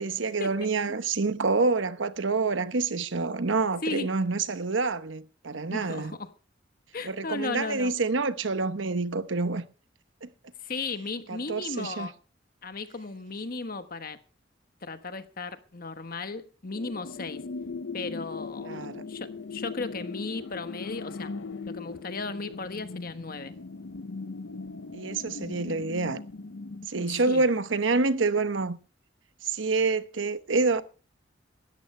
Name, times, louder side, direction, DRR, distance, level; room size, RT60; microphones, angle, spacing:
voice 1, 0.0-6.2 7.0-9.6 10.2-10.3 11.3-12.1 18.6-19.0 24.9-26.2 26.9-28.8 29.4-30.8, right 3 dB, 85° right, 1.0 m, -27 dB
voice 2, 5.7-6.3 6.9-7.9 10.6-12.2 12.6-14.2 14.8-17.4 17.9-18.8 19.1-21.3 21.6-23.5 27.0-27.5, left 3 dB, 50° left, 1.3 m, -36 dB
sound 1, 16.7-26.9, left 4 dB, 75° left, 0.7 m, -39 dB
17.5 x 13.5 x 3.3 m
head